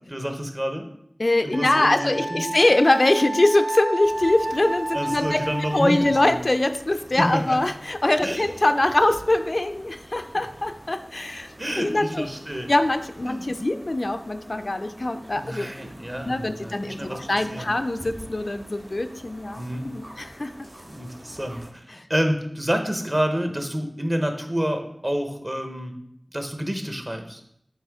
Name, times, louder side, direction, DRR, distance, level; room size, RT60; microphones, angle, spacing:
voice 1, 0.1-0.9 1.4-2.5 4.9-6.4 7.2-7.6 8.2-8.4 11.6-12.7 13.3-13.5 15.4-17.2 17.5-17.7 19.6-19.8 20.8-26.0 26.3-27.4, equal, 30° right, 5 dB, 0.9 m, -28 dB
voice 2, 1.2-5.4 5.7-12.3 12.7-15.7 16.2-20.5 22.0-22.1, left 2 dB, 50° left, 8 dB, 0.4 m, -23 dB
Wind instrument woodwind instrument, 1.5-6.4, right 1 dB, 70° right, 0.8 m, -31 dB
sound 1, 4.0-21.7, right 1 dB, 45° right, 1.8 m, -46 dB
8.5 x 3.3 x 3.5 m, 0.72 s
wide cardioid pair, 45°, 0 cm